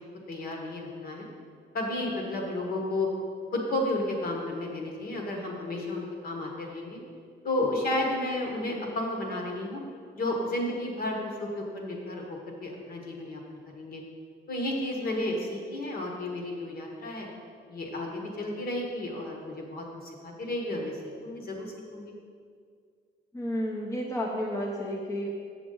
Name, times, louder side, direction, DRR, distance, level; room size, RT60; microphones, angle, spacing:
voice 1, 0.3-1.3 1.7-3.1 3.5-7.0 7.4-9.8 10.1-14.0 14.5-17.3 17.7-21.0 21.2-22.1, left 1 dB, 55° left, 0 dB, 1.4 m, -32 dB
voice 2, 23.3-25.3, equal, 15° left, -2 dB, 0.8 m, -31 dB
7.2 x 7.1 x 3.9 m, 2.1 s
cardioid pair, 140°, 19 cm